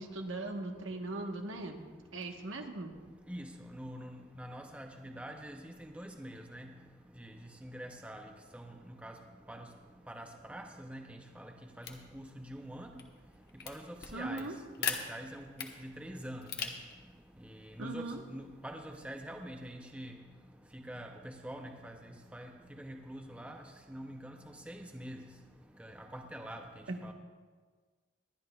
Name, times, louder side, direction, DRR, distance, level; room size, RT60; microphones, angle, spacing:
voice 1, 0.0-1.9 2.1-2.9 14.1-14.6 17.8-18.2 26.9-27.0, right 2 dB, 80° right, 3 dB, 1.2 m, -39 dB
voice 2, 3.3-6.7 7.2-7.3 7.6-8.3 8.5-9.2 9.5-9.7 10.1-12.9 13.7-14.5 14.9-16.8 17.6-20.2 20.7-22.0 22.3-23.6 23.9-24.4 24.7-25.3 25.8-26.7 27.0-27.1, right 1 dB, 5° right, 4 dB, 0.6 m, -45 dB
sound 1, 11.8-19.7, left 7 dB, 55° left, 1.1 m, -44 dB
21.5 x 11.0 x 2.3 m, 1.5 s
head